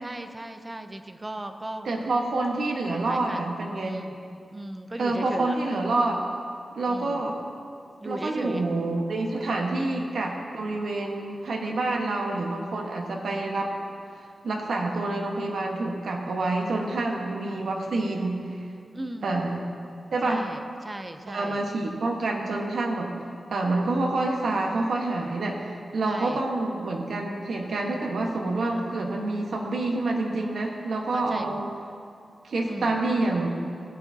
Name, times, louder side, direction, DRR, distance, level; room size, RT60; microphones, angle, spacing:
voice 1, 0.0-1.9 2.9-3.5 3.8-4.1 4.5-5.6 6.9-7.2 8.0-8.7 9.3-9.6 11.6-12.1 18.9-19.4 20.2-21.6 26.1-26.4 28.6-29.1 31.1-31.6 32.6-33.0, right 1 dB, 20° right, 8 dB, 0.5 m, -37 dB
voice 2, 1.8-4.0 5.0-6.2 6.8-7.4 8.0-13.7 14.4-18.4 19.2-19.6 20.1-20.5 21.3-23.1 23.5-31.7 32.4-33.5, right 2 dB, 75° right, 1 dB, 1.2 m, -27 dB
15.5 x 8.5 x 2.7 m, 2.3 s
wide cardioid pair, 150°, 0 cm